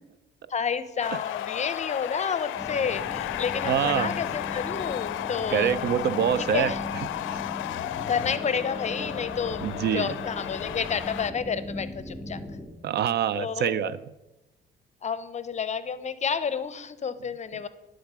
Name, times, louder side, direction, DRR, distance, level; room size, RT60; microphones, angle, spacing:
voice 1, 0.5-5.7 6.4-6.8 8.1-12.4 13.3-14.0 15.0-17.7, left 6 dB, 35° left, 14 dB, 0.6 m, -30 dB
sound 1, 1.0-11.3, left 13 dB, 80° left, 0.4 m, -33 dB
sound 2, 2.6-12.7, left 1 dB, 5° right, 3.3 m, -38 dB
voice 2, 3.6-4.1 5.5-6.7 9.6-10.1 12.8-14.0, right 9 dB, 60° right, 16 dB, 0.4 m, -25 dB
11.0 x 3.7 x 6.0 m, 0.99 s
cardioid pair, 90°, 20 cm